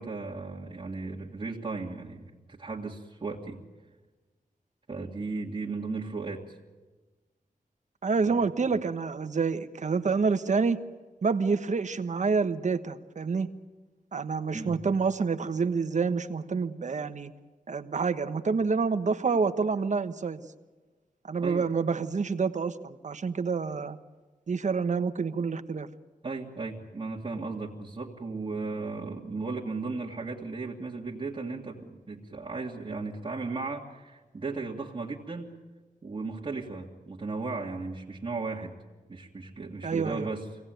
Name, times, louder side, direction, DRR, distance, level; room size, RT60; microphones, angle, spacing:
voice 1, 0.0-3.6 4.9-6.6 8.2-8.4 14.5-14.9 21.4-21.7 26.2-35.5 36.0-38.7 39.1-40.5, right 3 dB, 35° right, -4 dB, 2.2 m, -36 dB
voice 2, 8.0-10.8 11.2-13.5 14.1-17.3 17.7-20.4 21.2-24.0 24.5-25.9 39.8-40.3, right 5 dB, 55° right, 10 dB, 1.2 m, -28 dB
24.5 x 18.0 x 9.2 m, 1.3 s
wide cardioid pair, 110°, 15 cm